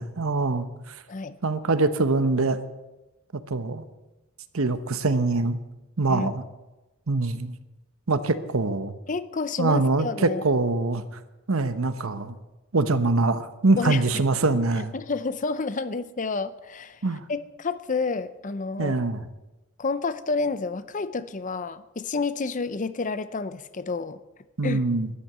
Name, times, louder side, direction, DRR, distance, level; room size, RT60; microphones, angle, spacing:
voice 1, 0.0-1.0 1.4-2.6 3.5-3.8 4.5-5.6 6.0-6.4 7.1-7.5 8.1-8.9 9.6-11.0 11.5-12.3 12.7-14.9 17.0-17.2 18.8-19.2 24.6-25.1, right 3 dB, 70° right, 11 dB, 1.0 m, -24 dB
voice 2, 9.1-10.4 13.8-14.0 14.9-17.0 17.3-18.9 19.8-24.2 24.6-24.8, left 4 dB, 35° left, 14 dB, 0.6 m, -29 dB
13.0 x 10.5 x 8.0 m, 1.1 s
head